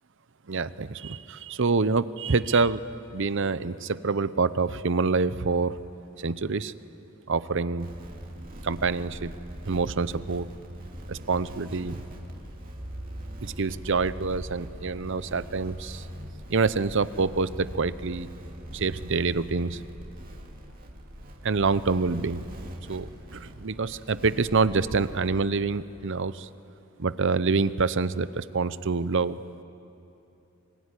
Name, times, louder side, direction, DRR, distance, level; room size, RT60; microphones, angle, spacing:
voice 1, 0.5-2.8 3.1-5.8 6.2-6.7 7.3-7.9 8.6-9.3 9.7-10.5 11.1-12.0 13.4-16.0 16.5-18.3 18.7-19.8 21.4-22.4 22.9-26.5 27.0-29.4, right 4 dB, 60° right, 15 dB, 0.7 m, -26 dB
sound 1, 7.8-25.5, equal, 45° right, 2.8 m, -41 dB
26.0 x 22.5 x 9.9 m, 2.8 s
head